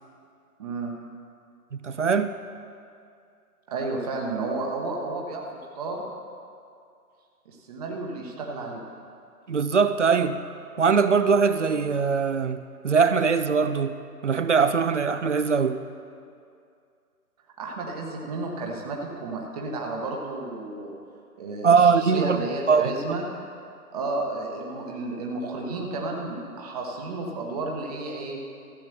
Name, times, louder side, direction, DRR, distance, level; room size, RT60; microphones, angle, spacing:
voice 1, 0.6-0.9 3.7-5.4 5.8-6.0 7.4-8.8 17.6-21.0 21.4-23.2 23.9-28.4, right 3 dB, 25° right, 1.2 m, -32 dB
voice 2, 1.8-2.3 9.5-10.4 10.8-14.0 14.2-15.8 21.6-22.9, right 5 dB, 50° right, 0.6 m, -21 dB
14.5 x 8.7 x 6.8 m
figure-of-eight pair, 145°, 47 cm